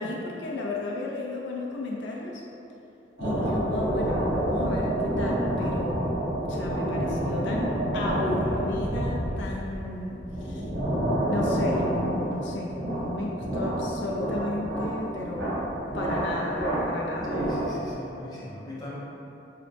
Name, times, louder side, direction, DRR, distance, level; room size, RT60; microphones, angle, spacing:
voice 1, 0.0-2.4 3.2-6.0 6.5-10.6 11.3-15.5 15.9-17.4, left 2 dB, 80° left, -2 dB, 0.4 m, -33 dB
sound 1, 3.2-17.9, right 1 dB, 80° right, 1.2 m, -28 dB
voice 2, 17.2-19.0, equal, 20° left, -9 dB, 0.9 m, -39 dB
5.6 x 2.0 x 3.3 m, 3.0 s
head